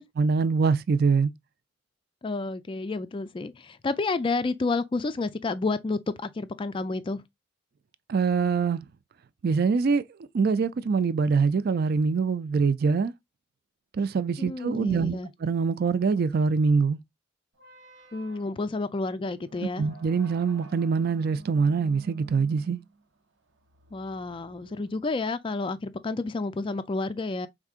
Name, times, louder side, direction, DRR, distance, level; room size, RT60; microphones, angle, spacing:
voice 1, 0.0-1.3 8.1-8.8 9.4-10.0 10.3-13.1 13.9-17.0 19.8-22.8, right 5 dB, 50° right, 0.4 m, -24 dB
voice 2, 2.2-7.2 14.4-15.3 18.1-19.8 23.9-27.5, left 3 dB, 25° left, 0.3 m, -30 dB
sound 1, 17.5-25.3, right 3 dB, 70° right, 0.8 m, -51 dB
4.7 x 3.6 x 2.4 m
head